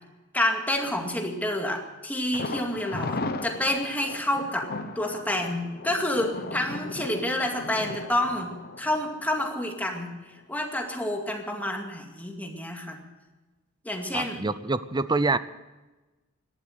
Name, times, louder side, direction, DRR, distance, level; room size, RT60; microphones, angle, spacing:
voice 1, 0.3-4.7 5.0-13.0 13.8-14.4, left 1 dB, 10° left, 2 dB, 2.2 m, -29 dB
Thunder, 2.3-10.1 10.4-10.5 10.9-11.0, left 2 dB, 45° left, 1.0 m, -37 dB
voice 2, 14.1-15.4, right 3 dB, 20° right, 15 dB, 0.6 m, -26 dB
18.0 x 12.5 x 6.4 m, 1.1 s
head